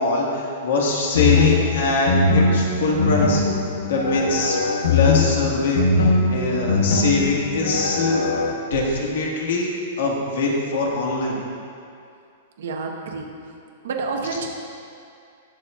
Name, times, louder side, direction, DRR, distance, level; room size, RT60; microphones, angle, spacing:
voice 1, 0.0-3.4 3.9-4.6 4.9-8.2 8.5-9.7 10.0-11.4, left 2 dB, 70° left, -2 dB, 1.9 m, -23 dB
sound 1, 1.1-8.5, left 4 dB, 85° left, 0.9 m, -21 dB
voice 2, 12.6-13.2 13.8-14.5, right 4 dB, 70° right, 2 dB, 1.2 m, -28 dB
18.0 x 6.7 x 2.5 m, 2.4 s
supercardioid pair, 175°, 0 cm